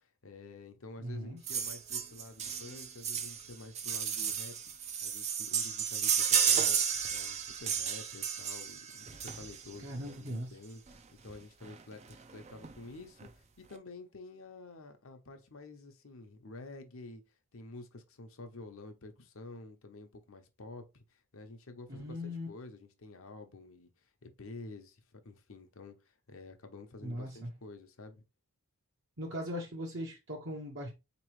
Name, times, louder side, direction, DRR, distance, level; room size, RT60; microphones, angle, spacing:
voice 1, 0.0-4.5 5.0-10.8 11.2-17.2 17.5-28.2, left 3 dB, 70° left, 0.8 m, -50 dB
voice 2, 1.0-1.4 9.8-10.6 21.9-22.5 27.0-27.5 29.2-30.9, equal, 55° right, 0.9 m, -39 dB
sound 1, 1.5-9.8 10.9-11.0 11.3-11.4 11.6-11.8 12.1-12.7 13.2-13.3, right 7 dB, 30° right, 0.4 m, -32 dB
4.1 x 3.0 x 3.1 m
head